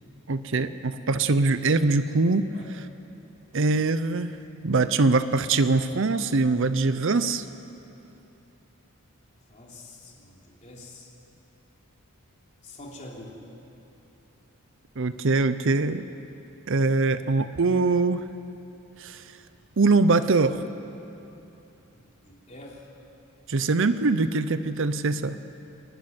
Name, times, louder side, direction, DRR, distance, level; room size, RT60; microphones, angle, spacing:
voice 1, 0.3-2.5 3.5-4.4 4.6-7.4 15.0-16.1 16.7-18.3 19.0-19.2 19.8-20.6 23.5-25.4, right 3 dB, 60° right, 12 dB, 0.7 m, -23 dB
voice 2, 9.3-11.1 12.6-13.4 21.9-22.9, left 1 dB, 35° left, -3 dB, 3.6 m, -46 dB
29.0 x 12.0 x 9.6 m, 2.9 s
head